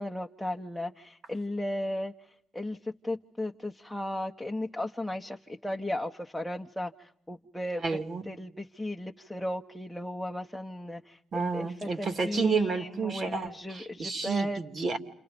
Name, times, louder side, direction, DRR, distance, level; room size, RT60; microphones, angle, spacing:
voice 1, 0.0-2.1 2.5-7.8 8.3-14.6, left 1 dB, 5° left, 2 dB, 1.3 m, -35 dB
voice 2, 7.8-8.2 11.3-15.0, right 5 dB, 50° right, 7 dB, 3.2 m, -30 dB
29.5 x 29.0 x 5.3 m, 0.69 s
cardioid pair, 90°, 0 cm